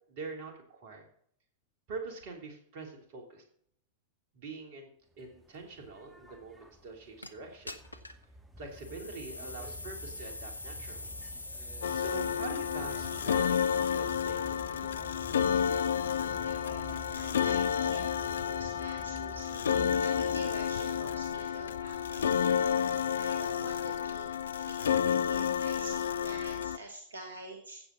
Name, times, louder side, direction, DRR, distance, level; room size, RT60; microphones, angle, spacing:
voice 1, 0.1-1.0 1.9-3.4 4.3-4.9 5.2-7.8 8.6-11.1 11.9-14.8, right 4 dB, 50° right, 3 dB, 3.1 m, -44 dB
sound 1, 5.1-24.3, equal, 10° right, 1.8 m, -50 dB
sound 2, 7.2-7.3 7.7-8.2 8.7-14.3, left 2 dB, 85° left, 0.8 m, -44 dB
sound 3, 11.8-26.8, left 8 dB, 65° left, 0.4 m, -30 dB
voice 2, 16.2-24.3 24.6-27.8, right 2 dB, 75° right, 3 dB, 1.5 m, -47 dB
15.0 x 7.9 x 4.0 m, 0.65 s
figure-of-eight pair, 90°, 0 cm